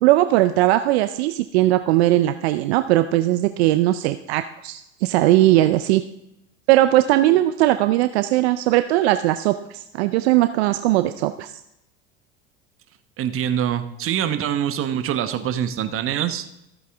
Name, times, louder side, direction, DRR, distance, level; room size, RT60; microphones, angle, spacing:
voice 1, 0.0-6.0 6.7-11.5, right 15 dB, 70° right, 11 dB, 0.6 m, -19 dB
voice 2, 13.2-16.5, right 9 dB, 40° right, 9 dB, 1.0 m, -24 dB
14.0 x 8.2 x 3.5 m, 0.83 s
hypercardioid pair, 80°, 33 cm